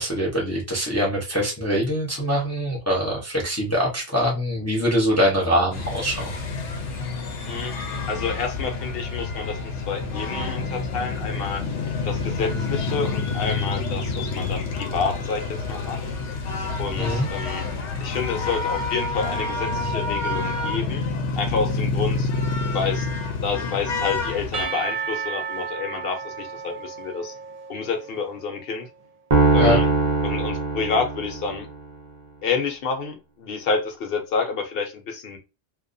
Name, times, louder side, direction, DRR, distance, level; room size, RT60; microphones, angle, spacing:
voice 1, 0.0-6.3 17.0-17.3 29.6-29.8, equal, 15° left, 0.6 m, -23 dB
sound 1, 5.7-24.7, left 3 dB, 80° left, 0.9 m, -28 dB
voice 2, 8.1-11.6 12.1-16.0 16.8-17.7 18.0-21.0 21.4-22.3 22.7-23.1 23.4-27.3 27.7-28.9 29.5-29.9 30.2-31.7 32.4-35.4, left 5 dB, 60° left, 0.8 m, -29 dB
Percussion / Church bell, 24.5-28.5, right 6 dB, 75° right, 0.3 m, -33 dB
sound 2, 29.3-31.7, right 3 dB, 40° right, 0.7 m, -21 dB
2.3 x 2.1 x 2.5 m
omnidirectional pair, 1.2 m